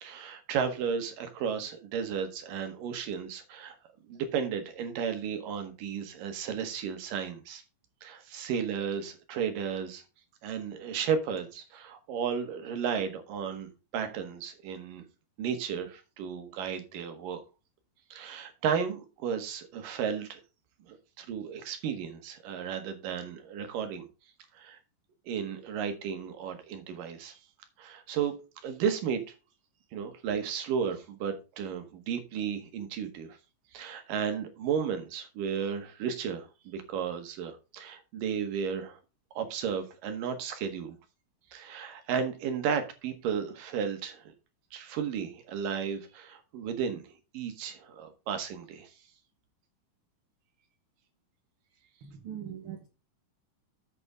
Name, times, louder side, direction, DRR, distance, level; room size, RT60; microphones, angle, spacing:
voice 1, 0.0-3.7 4.1-7.6 8.0-10.0 10.4-15.0 15.4-17.4 18.1-20.4 20.9-24.1 24.5-24.8 25.3-27.4 27.8-28.3 28.6-29.2 29.9-33.4 33.7-39.0 39.3-41.0 41.5-44.3 44.7-48.9, right 7 dB, 85° right, 3.3 m, -34 dB
voice 2, 52.0-52.9, right 9 dB, 55° right, 1.5 m, -41 dB
8.3 x 8.3 x 3.6 m
omnidirectional pair, 3.8 m